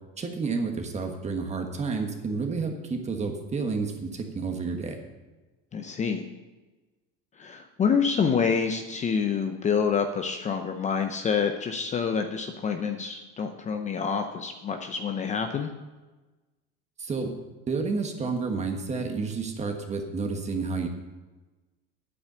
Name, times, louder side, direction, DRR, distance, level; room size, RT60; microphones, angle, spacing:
voice 1, 0.2-5.0 17.0-17.3 17.7-20.9, right 4 dB, 20° right, 4 dB, 1.4 m, -30 dB
voice 2, 5.7-6.2 7.4-15.7, left 6 dB, 25° left, 5 dB, 0.7 m, -27 dB
8.6 x 7.9 x 6.8 m, 1.2 s
supercardioid pair, 130°, 30 cm